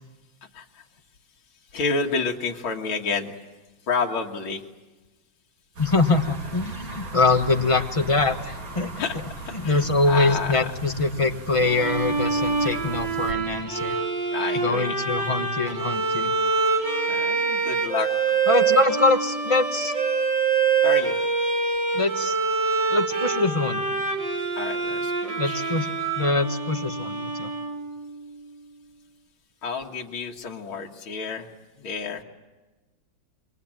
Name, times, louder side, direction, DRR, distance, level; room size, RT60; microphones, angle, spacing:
voice 1, 0.5-0.8 1.7-3.3 3.9-4.6 9.0-9.2 9.6-10.7 14.3-15.0 17.1-18.5 20.8-21.2 24.6-25.9 29.6-31.5 31.8-32.2, left 4 dB, 90° left, 0 dB, 2.5 m, -30 dB
voice 2, 5.8-8.9 9.5-14.0 14.5-16.3 18.5-19.9 21.9-22.4 22.9-23.8 25.4-27.5, left 3 dB, 20° left, 6 dB, 1.1 m, -23 dB
sound 1, 5.8-13.3, right 1 dB, 75° right, 3.6 m, -38 dB
Bowed string instrument, 11.6-28.1, right 4 dB, 60° right, 3.7 m, -25 dB
27.5 x 23.0 x 9.0 m, 1.2 s
omnidirectional pair, 2.2 m